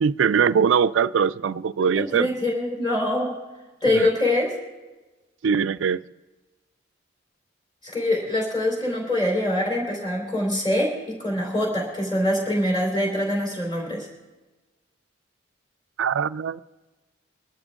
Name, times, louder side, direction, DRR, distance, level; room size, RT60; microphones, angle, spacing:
voice 1, 0.0-2.3 3.9-4.1 5.4-6.0 16.0-16.6, right 6 dB, 75° right, 0.4 m, -21 dB
voice 2, 1.9-3.3 3.8-4.5 7.8-14.1, left 1 dB, 25° left, 3.9 m, -24 dB
23.5 x 12.5 x 3.7 m
head